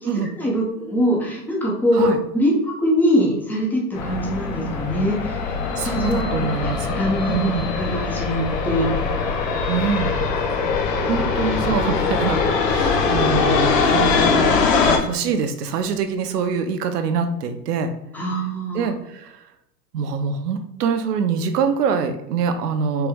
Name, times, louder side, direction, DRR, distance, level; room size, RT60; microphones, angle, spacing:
voice 1, 0.0-5.5 5.8-6.5 6.9-7.5 7.7-8.9 11.3-11.4 18.1-18.9, equal, 5° left, -3 dB, 0.3 m, -23 dB
sound 1, 4.0-15.0, left 5 dB, 85° left, 1.1 m, -22 dB
voice 2, 5.8-7.0 7.3-7.7 9.7-10.2 11.0-17.9 18.7-19.3 19.9-23.1, right 6 dB, 75° right, 8 dB, 0.8 m, -24 dB
4.5 x 2.6 x 3.5 m, 0.87 s
hypercardioid pair, 130°, 48 cm